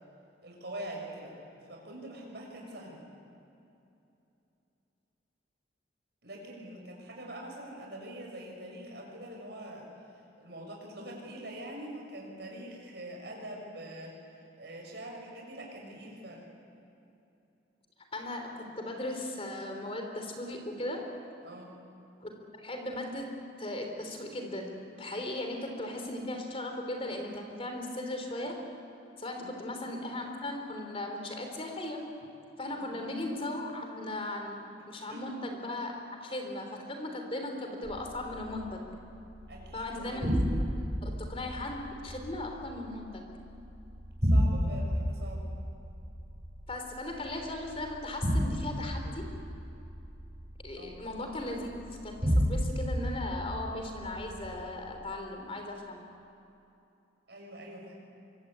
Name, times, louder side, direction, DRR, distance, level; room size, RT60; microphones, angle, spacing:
voice 1, 0.4-1.4 1.7-3.0 6.2-9.9 10.4-16.4 21.4-21.7 29.4-29.6 32.7-33.2 35.1-35.3 39.5-40.2 44.2-45.5 50.7-51.0 57.3-58.0, right 1 dB, 60° right, 0 dB, 6.8 m, -44 dB
voice 2, 18.1-21.1 22.2-22.3 22.6-28.6 29.2-32.0 32.6-38.8 39.7-43.2 46.7-49.3 50.6-56.0, left 1 dB, 30° left, 3 dB, 3.6 m, -37 dB
sound 1, 37.8-54.6, equal, 30° right, 4.6 m, -33 dB
24.5 x 22.5 x 8.8 m, 2.8 s
head